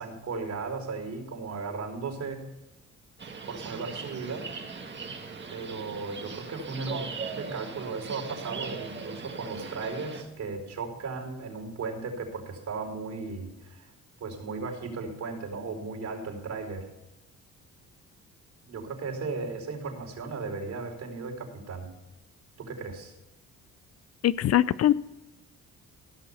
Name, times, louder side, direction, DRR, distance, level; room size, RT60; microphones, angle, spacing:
voice 1, 0.0-2.5 3.5-4.5 5.5-13.9 14.2-16.8 18.7-21.9 22.6-23.1, right 4 dB, 65° right, 2 dB, 4.7 m, -36 dB
sound 1, 3.2-10.2, right 5 dB, 35° right, 1.9 m, -39 dB
voice 2, 24.2-24.9, left 12 dB, 55° left, 18 dB, 0.5 m, -22 dB
16.5 x 6.9 x 5.7 m, 1.0 s
cardioid pair, 90°, 30 cm